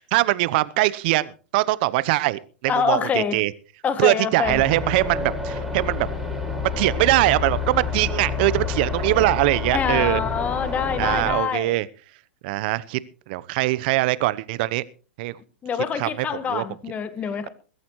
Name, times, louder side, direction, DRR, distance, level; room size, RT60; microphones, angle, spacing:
voice 1, 0.0-3.5 4.0-6.1 6.8-10.2 11.0-11.9 12.4-13.0 13.3-14.8 15.2-15.3 16.0-16.6, right 18 dB, 50° right, 0.9 m, -22 dB
voice 2, 2.7-3.4 3.8-4.6 9.7-11.7 15.6-17.5, left 7 dB, 25° left, 1.7 m, -25 dB
sound 1, 4.4-11.3, left 4 dB, ahead, 6.0 m, -28 dB
21.0 x 14.0 x 3.2 m
hypercardioid pair, 110°, 6 cm